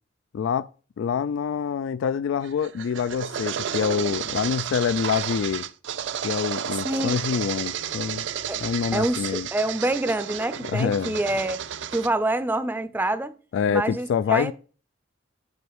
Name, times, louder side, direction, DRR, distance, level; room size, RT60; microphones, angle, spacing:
voice 1, 0.3-0.7 1.0-5.6 6.2-8.2 8.6-9.5 10.6-11.2 13.5-14.5, left 7 dB, 90° left, 0.3 m, -26 dB
sound 1, 2.4-12.1, right 9 dB, 70° right, 0.5 m, -32 dB
voice 2, 6.8-7.2 8.5-8.7 8.9-11.6 11.9-13.4 13.7-14.5, right 2 dB, 10° right, 0.5 m, -26 dB
7.9 x 5.3 x 4.7 m
head